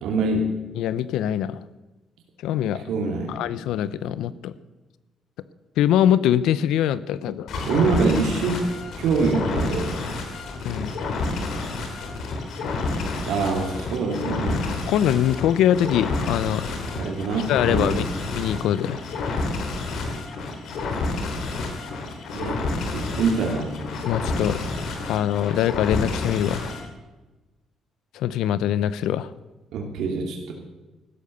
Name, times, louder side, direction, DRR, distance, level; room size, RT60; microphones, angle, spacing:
voice 1, 0.0-0.5 2.9-3.4 7.7-8.6 9.0-10.0 13.2-14.7 16.9-18.0 22.3-23.7 29.7-30.5, right 4 dB, 80° right, 1 dB, 2.8 m, -25 dB
voice 2, 0.8-1.6 2.4-2.8 3.3-4.5 5.8-7.5 10.6-10.9 14.9-16.7 17.0-17.1 17.5-18.1 18.3-19.0 24.0-24.6 25.1-26.7 28.1-29.3, left 10 dB, 90° left, 16 dB, 0.7 m, -23 dB
sound 1, 7.5-26.9, left 3 dB, 70° left, 3.3 m, -29 dB
15.5 x 12.5 x 6.7 m, 1.1 s
cardioid pair, 130°, 0 cm